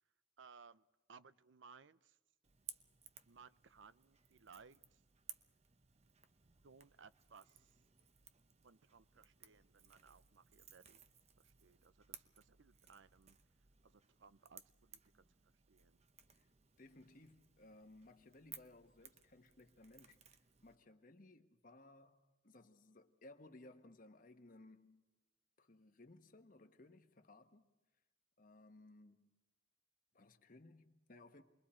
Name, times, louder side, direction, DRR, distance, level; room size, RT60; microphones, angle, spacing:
voice 1, 0.4-2.2 3.3-5.0 6.6-7.8 8.6-11.0 11.4-13.4 13.8-16.0, right 5 dB, 75° right, 0.6 m, -63 dB
Crackle / Crack, 2.4-20.8, right 8 dB, 35° right, 0.8 m, -60 dB
voice 2, 16.8-20.2 20.6-25.0 25.6-27.7 28.4-29.3 30.1-31.4, left 2 dB, 45° left, 1.2 m, -61 dB
29.0 x 22.0 x 4.4 m
head